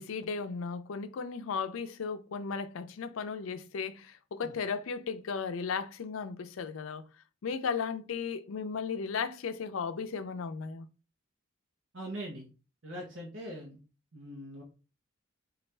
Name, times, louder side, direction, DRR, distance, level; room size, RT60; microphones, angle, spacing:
voice 1, 0.0-7.1 7.4-10.9, left 5 dB, 80° left, 0.4 m, -35 dB
voice 2, 11.9-12.5 12.8-13.8 14.1-14.6, right 1 dB, 65° right, 0.9 m, -41 dB
4.2 x 2.4 x 3.2 m
head